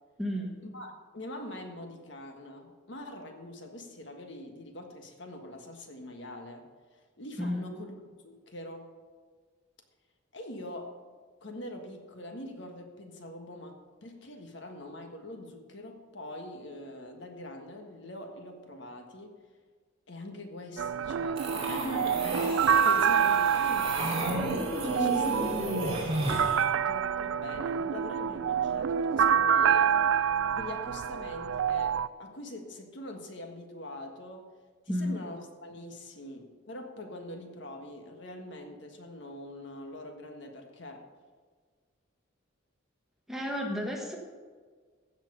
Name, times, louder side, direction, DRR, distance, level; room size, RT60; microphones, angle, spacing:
voice 1, 0.2-0.6 7.4-7.7 34.9-35.1 43.3-44.2, equal, ahead, 0 dB, 1.5 m, -32 dB
voice 2, 0.7-6.7 7.2-7.9 8.2-8.9 10.3-11.0 11.4-19.3 20.1-26.4 26.8-30.2 30.5-34.5 34.8-41.1, left 1 dB, 60° left, 4 dB, 1.5 m, -43 dB
sound 1, 20.8-32.1, right 8 dB, 75° right, 0.3 m, -27 dB
sound 2, 21.4-26.7, right 1 dB, 30° right, 2.7 m, -32 dB
15.5 x 6.1 x 6.8 m, 1.5 s
head